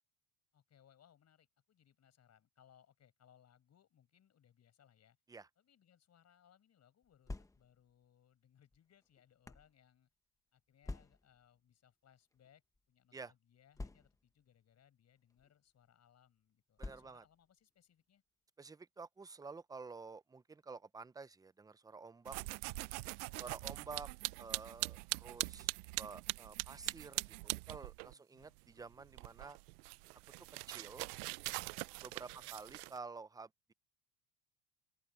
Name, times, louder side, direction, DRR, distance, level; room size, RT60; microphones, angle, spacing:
voice 1, 0.5-5.2 5.6-10.1 10.5-18.2 22.7-23.7 28.0-28.5 32.2-32.6, left 9 dB, 35° left, 6.7 m, -69 dB
sound 1, 7.0-7.9 8.7-9.7 10.8-11.4 12.3-12.5 12.7-12.8 13.7-14.4 15.3-15.5 16.8-17.4, left 2 dB, 5° left, 1.0 m, -48 dB
voice 2, 16.8-17.2 18.6-22.4 23.4-24.1 24.4-25.7 26.0-29.6 30.5-31.1 32.0-33.7, right 4 dB, 10° right, 0.6 m, -50 dB
sound 2, 22.3-28.1 28.4-33.0, right 25 dB, 90° right, 0.6 m, -42 dB
open air
supercardioid pair, 125°, 45 cm